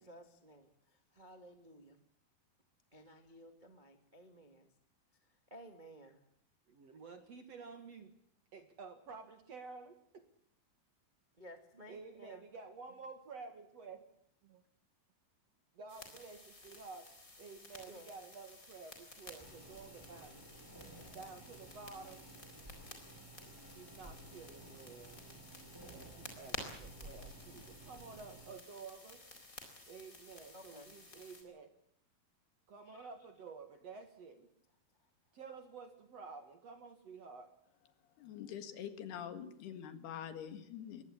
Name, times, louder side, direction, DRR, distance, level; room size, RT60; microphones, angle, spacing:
voice 1, 0.0-2.0 2.9-4.7 5.2-6.2 11.4-12.4 17.9-18.1 30.5-30.9 32.8-33.1, equal, 20° right, 1.1 m, -56 dB
voice 2, 6.7-8.1 8.5-10.2 11.9-14.0 14.4-14.6 15.7-17.1 17.4-20.3 21.1-22.3 23.7-25.2 25.8-29.2 29.9-31.7 32.7-34.5 35.3-37.5, right 4 dB, 50° right, 2.2 m, -51 dB
sound 1, 15.9-31.4, left 2 dB, 20° left, 4.2 m, -53 dB
sound 2, 19.4-28.5, right 2 dB, 5° right, 5.3 m, -55 dB
voice 3, 38.0-41.0, left 9 dB, 75° left, 3.7 m, -45 dB
22.5 x 18.0 x 8.7 m
omnidirectional pair, 4.7 m